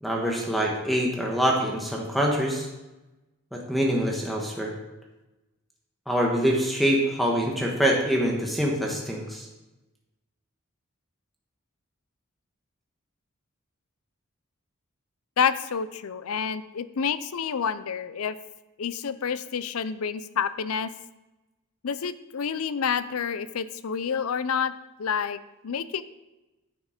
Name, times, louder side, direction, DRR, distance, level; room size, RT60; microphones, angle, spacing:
voice 1, 0.0-2.7 3.5-4.7 6.1-9.4, equal, ahead, -1 dB, 1.3 m, -25 dB
voice 2, 15.4-18.4 18.8-20.9 21.8-24.7 25.0-26.0, left 6 dB, 90° left, 14 dB, 0.5 m, -28 dB
9.7 x 7.2 x 5.1 m, 1.0 s
head